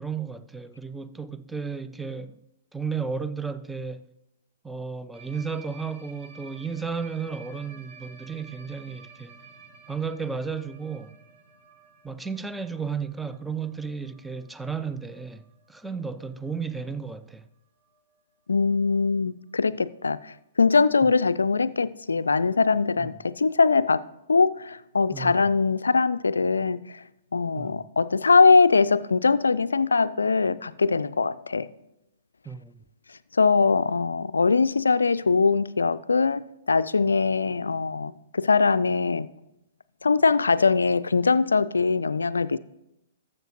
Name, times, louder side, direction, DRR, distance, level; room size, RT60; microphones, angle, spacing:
voice 1, 0.0-2.4 2.7-4.1 4.6-9.3 9.9-11.2 12.0-17.5 23.0-23.1 25.1-25.5 27.6-27.8 32.5-32.8, right 5 dB, 5° right, 0.4 m, -33 dB
sound 1, 5.1-17.0 17.3-17.5 17.8-18.0 18.3-18.4 18.7-18.8 19.9-20.0, right 4 dB, 25° right, 1.4 m, -52 dB
voice 2, 18.5-24.0 24.3-27.0 27.3-31.7 33.3-39.3 40.0-42.6, left 4 dB, 75° left, 0.3 m, -22 dB
13.0 x 7.4 x 3.1 m
figure-of-eight pair, 115°, 0 cm